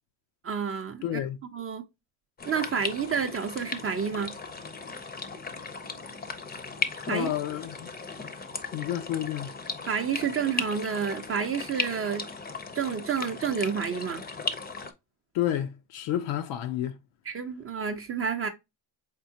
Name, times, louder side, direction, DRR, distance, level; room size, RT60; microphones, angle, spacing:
voice 1, 0.4-1.2 1.5-1.8 2.4-4.4 7.1-7.3 9.9-12.3 12.7-14.2 17.3-18.5, right 6 dB, 30° right, 0.5 m, -29 dB
voice 2, 1.0-1.4 7.1-7.9 8.7-9.5 15.3-17.0, left 11 dB, 80° left, 0.6 m, -30 dB
sound 1, 2.4-14.9, left 4 dB, 20° left, 0.5 m, -37 dB
4.2 x 3.7 x 2.7 m
cardioid pair, 110°, 45 cm